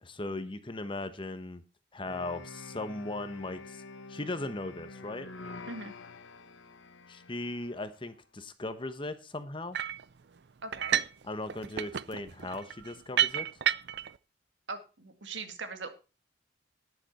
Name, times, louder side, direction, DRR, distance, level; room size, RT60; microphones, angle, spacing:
voice 1, 0.0-1.6 1.9-3.8 4.1-5.3 7.1-9.8 11.3-13.5, left 2 dB, 25° left, 11 dB, 1.1 m, -38 dB
sound 1, 2.1-8.0, left 3 dB, 90° left, 1.3 m, -47 dB
sound 2, 9.7-10.0 10.7-11.2 11.5-14.1, right 10 dB, 60° right, 0.5 m, -30 dB
voice 2, 10.6-11.0 14.7-15.9, right 3 dB, 75° right, 8 dB, 2.0 m, -40 dB
11.5 x 10.5 x 4.3 m, 0.32 s
head